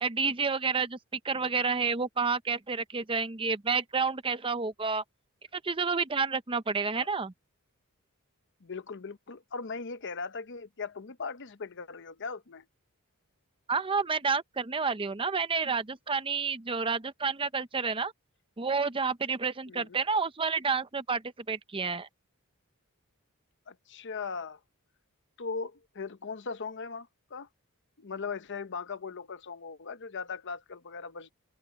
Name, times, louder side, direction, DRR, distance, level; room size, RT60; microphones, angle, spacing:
voice 1, 0.0-5.0 5.5-7.3 13.7-18.1 18.6-21.2 21.5-22.1, right 5 dB, 25° right, 0.7 m, -30 dB
voice 2, 8.6-12.6 19.7-20.0 23.7-24.6 25.4-27.5 28.0-31.3, left 5 dB, 55° left, 0.9 m, -39 dB
open air
head